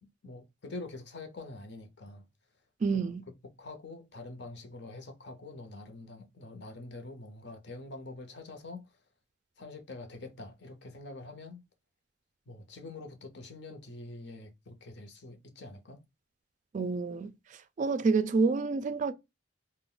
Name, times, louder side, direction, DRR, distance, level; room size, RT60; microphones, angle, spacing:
voice 1, 0.0-2.3 2.9-3.0 3.6-8.9 9.6-11.6 12.5-16.0, left 2 dB, 65° left, 0.8 m, -45 dB
voice 2, 2.8-3.2 16.7-17.3 17.8-19.1, right 4 dB, 40° right, 0.3 m, -28 dB
2.4 x 2.1 x 3.7 m
head